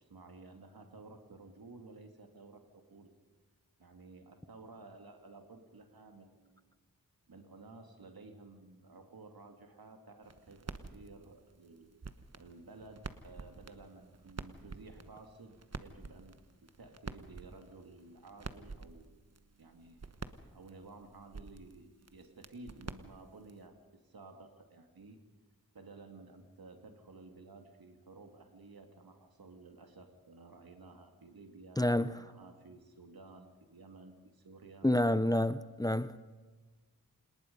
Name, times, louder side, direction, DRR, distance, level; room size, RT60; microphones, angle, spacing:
voice 1, 0.0-3.1 3.8-6.7 7.3-11.9 12.3-16.4 16.8-19.1 19.6-20.1 20.5-25.2 25.7-34.9, right 3 dB, 80° right, 2.7 m, -54 dB
sound 1, 10.2-23.7, right 4 dB, 45° right, 1.3 m, -49 dB
voice 2, 31.8-32.2 34.8-36.2, left 1 dB, 10° left, 0.8 m, -28 dB
28.0 x 19.5 x 5.5 m
cardioid pair, 55°, 35 cm